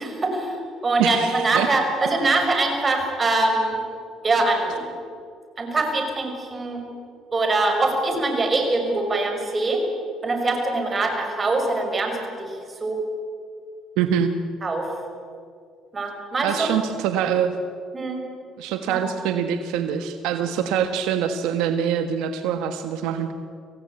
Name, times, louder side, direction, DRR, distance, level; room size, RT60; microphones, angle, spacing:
voice 1, 0.0-3.8 4.2-5.0 5.6-6.8 7.3-9.8 10.2-13.0 14.6-14.9 15.9-16.7 17.9-18.2 18.9-19.0, right 2 dB, 30° right, 4 dB, 5.9 m, -23 dB
voice 2, 1.0-1.7 14.0-14.3 16.4-17.5 18.6-23.3, right 8 dB, 85° right, 8 dB, 1.4 m, -24 dB
26.0 x 16.5 x 8.7 m, 2.3 s
supercardioid pair, 85°, 0 cm